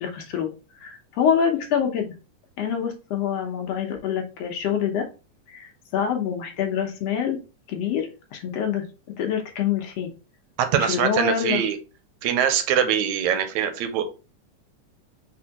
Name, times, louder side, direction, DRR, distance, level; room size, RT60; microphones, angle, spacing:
voice 1, 0.0-0.5 0.8-2.1 2.6-5.1 5.5-7.4 7.7-8.9 9.2-10.1 10.8-11.6, left 8 dB, 70° left, 4 dB, 1.7 m, -26 dB
voice 2, 10.6-11.8 12.2-14.0, right 8 dB, 80° right, 8 dB, 2.0 m, -23 dB
4.3 x 4.3 x 2.8 m, 0.32 s
omnidirectional pair, 3.3 m